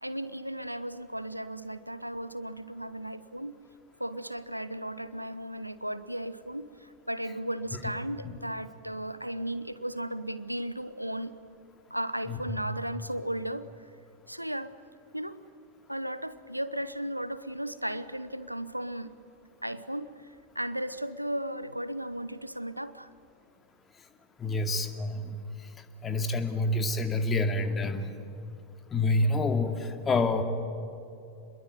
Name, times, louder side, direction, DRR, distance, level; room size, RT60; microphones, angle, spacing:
voice 1, 0.0-3.5 4.0-11.4 11.9-13.7 14.3-14.8 15.1-15.4 15.9-19.1 19.6-23.1, right 1 dB, 90° right, 15 dB, 0.9 m, -35 dB
voice 2, 12.3-12.6 24.4-28.1 28.9-30.4, left 2 dB, 20° left, 7 dB, 2.5 m, -28 dB
29.0 x 22.0 x 9.2 m, 2.7 s
figure-of-eight pair, 90°, 0 cm